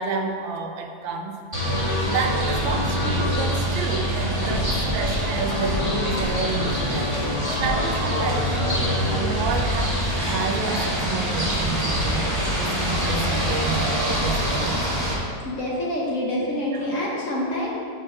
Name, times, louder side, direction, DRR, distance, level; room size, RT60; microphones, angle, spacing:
voice 1, 0.0-1.7 1.9-4.7 4.9-8.7 9.1-14.9 16.7-16.8, right 5 dB, 85° right, 4 dB, 1.4 m, -30 dB
sound 1, 1.5-15.1, equal, 15° right, 1.5 m, -24 dB
sound 2, 7.0-15.0, right 1 dB, 45° right, 0.9 m, -41 dB
voice 2, 15.4-17.7, left 1 dB, 50° left, -4 dB, 1.1 m, -27 dB
4.9 x 4.5 x 6.1 m, 2.3 s
omnidirectional pair, 2.1 m